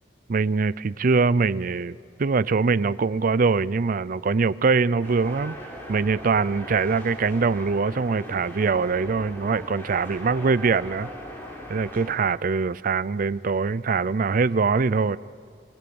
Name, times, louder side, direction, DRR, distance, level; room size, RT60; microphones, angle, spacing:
voice 1, 0.3-5.6 5.9-11.1 11.7-15.2, right 4 dB, 50° right, 0.5 m, -23 dB
sound 1, 5.0-12.2, equal, 15° left, 3.8 m, -40 dB
27.5 x 19.0 x 7.1 m
head